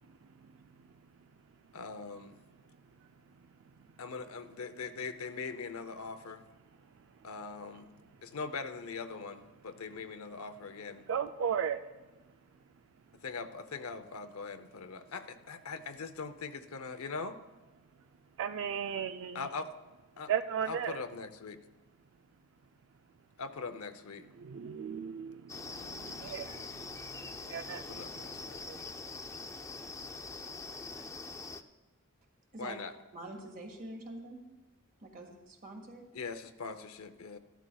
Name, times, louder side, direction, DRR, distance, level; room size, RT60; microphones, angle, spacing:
voice 1, 1.7-2.3 4.0-6.4 7.2-7.9 8.2-11.1 13.1-17.4 19.3-19.7 20.2-20.3 20.7-21.6 23.4-24.3 27.7-28.6 32.6-32.9 36.1-37.4, left 4 dB, 75° left, 9 dB, 0.7 m, -41 dB
voice 2, 11.1-11.8 18.4-19.4 20.3-20.9 24.4-26.7 27.5-27.8 28.7-28.8, right 8 dB, 60° right, 9 dB, 0.4 m, -35 dB
sound 1, 25.5-31.6, left 3 dB, 15° left, 0.4 m, -43 dB
voice 3, 33.1-34.4 35.0-36.0, right 1 dB, 40° right, 2 dB, 1.7 m, -45 dB
14.0 x 12.5 x 2.3 m, 1.1 s
head